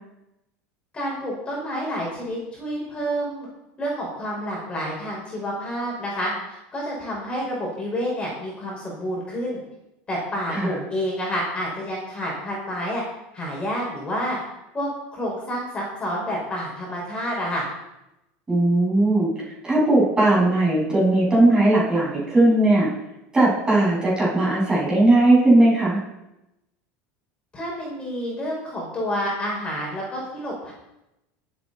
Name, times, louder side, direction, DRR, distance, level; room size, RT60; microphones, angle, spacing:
voice 1, 0.9-3.5 3.8-6.3 6.7-9.6 10.1-13.0 13.3-14.4 14.7-17.6 27.5-30.7, equal, 20° left, -4 dB, 5.4 m, -29 dB
voice 2, 18.5-22.9 23.3-26.0, right 2 dB, 15° right, -5 dB, 6.6 m, -18 dB
23.0 x 8.3 x 4.3 m, 0.89 s
supercardioid pair, 140°, 6 cm